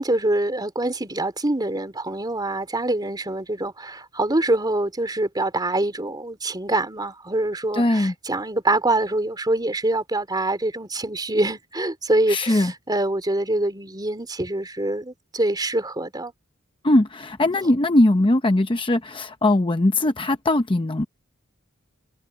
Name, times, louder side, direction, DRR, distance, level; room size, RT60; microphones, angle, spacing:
voice 1, 0.0-16.3, right 2 dB, 20° right, 3.5 m, -25 dB
voice 2, 7.7-8.1 12.3-12.7 16.8-21.1, left 1 dB, 25° left, 0.8 m, -20 dB
head